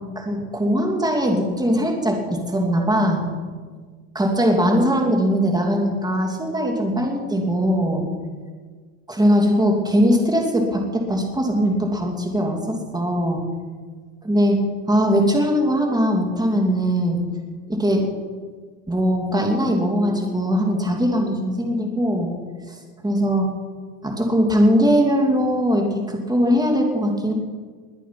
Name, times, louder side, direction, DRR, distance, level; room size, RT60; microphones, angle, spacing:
voice 1, 0.1-3.2 4.1-8.1 9.1-13.4 14.2-14.6 14.9-17.2 17.7-18.0 18.9-22.3 22.7-22.8 23.0-23.5 24.0-27.3, equal, 10° right, 1 dB, 2.8 m, -20 dB
21.5 x 8.3 x 6.0 m, 1.5 s
supercardioid pair, 115°, 45 cm